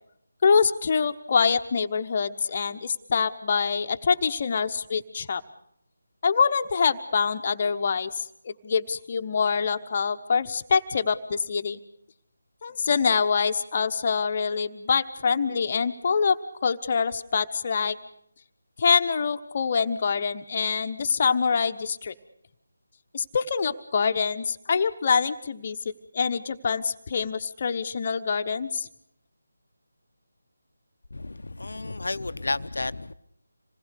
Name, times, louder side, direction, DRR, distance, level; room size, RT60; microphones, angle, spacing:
voice 1, 0.4-5.4 6.2-11.8 12.6-18.0 18.8-22.1 23.1-28.9, left 5 dB, 35° left, 1.1 m, -25 dB
voice 2, 31.1-33.1, left 2 dB, 60° left, 0.8 m, -32 dB
27.0 x 20.0 x 6.6 m
figure-of-eight pair, 155°, 0 cm